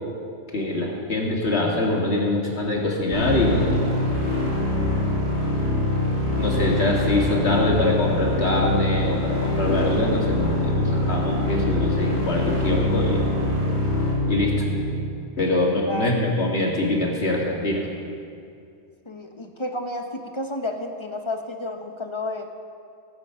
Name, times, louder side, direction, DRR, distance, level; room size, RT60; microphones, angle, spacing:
voice 1, 0.5-3.9 6.4-13.2 14.3-14.7 15.4-17.9, left 1 dB, 65° left, -2 dB, 2.3 m, -24 dB
sound 1, 3.1-15.1, left 1 dB, 35° right, 3.4 m, -24 dB
voice 2, 19.1-22.5, left 1 dB, 30° left, 5 dB, 0.7 m, -31 dB
17.0 x 8.0 x 5.5 m, 2.4 s
omnidirectional pair, 1.2 m